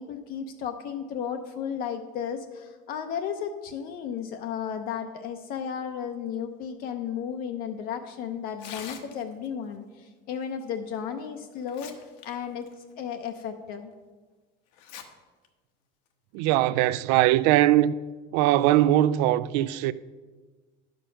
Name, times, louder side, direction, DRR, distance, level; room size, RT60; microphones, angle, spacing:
voice 1, 0.0-11.9 12.2-12.7 13.0-13.9, left 8 dB, 45° left, 0.6 m, -34 dB
Tearing, 8.5-9.5 10.9-11.0 11.5-12.3 12.6-12.7 13.4-13.5 14.7-15.0 15.4-15.5 16.4-16.6, left 8 dB, 85° left, 1.2 m, -43 dB
voice 2, 16.3-17.9 18.3-19.9, right 14 dB, 85° right, 0.4 m, -21 dB
11.0 x 5.2 x 5.7 m
cardioid pair, 175°, 21 cm